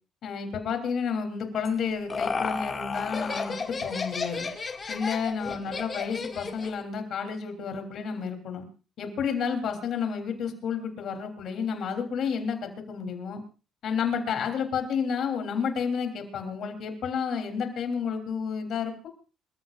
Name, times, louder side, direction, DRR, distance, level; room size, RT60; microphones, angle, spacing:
voice 1, 0.2-4.5 4.9-8.7 9.0-13.4 13.8-19.1, left 6 dB, 65° left, 5 dB, 3.4 m, -31 dB
Laughter, 1.6-6.8, left 4 dB, 35° left, 2.1 m, -32 dB
26.5 x 14.5 x 2.5 m, 0.34 s
cardioid pair, 105°, 0 cm